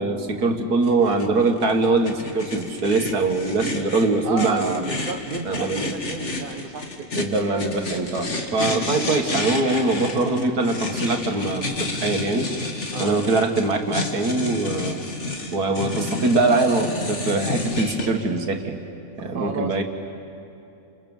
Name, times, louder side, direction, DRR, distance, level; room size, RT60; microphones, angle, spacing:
voice 1, 0.0-4.9 5.5-5.9 7.2-12.5 13.0-15.0 15.5-18.8 19.2-19.8, right 3 dB, 90° right, 4 dB, 2.4 m, -22 dB
sound 1, 0.8-18.1, left 3 dB, 50° left, 2.3 m, -30 dB
voice 2, 4.2-7.1 8.6-8.9 12.9-13.3 19.2-19.8, right 5 dB, 35° right, 5 dB, 1.4 m, -32 dB
30.0 x 27.0 x 7.3 m, 2.8 s
omnidirectional pair, 1.6 m